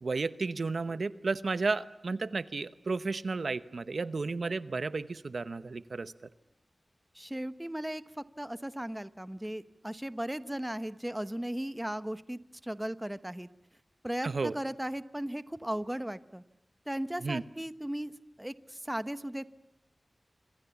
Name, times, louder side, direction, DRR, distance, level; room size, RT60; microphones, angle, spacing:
voice 1, 0.0-6.1 14.2-14.5 17.2-17.4, right 3 dB, 75° right, 15 dB, 0.9 m, -33 dB
voice 2, 7.1-8.0 8.4-13.5 14.0-16.4 16.9-18.1 18.4-19.6, right 1 dB, 10° right, 14 dB, 1.0 m, -36 dB
27.0 x 25.5 x 7.1 m, 0.81 s
wide cardioid pair, 90°, 0 cm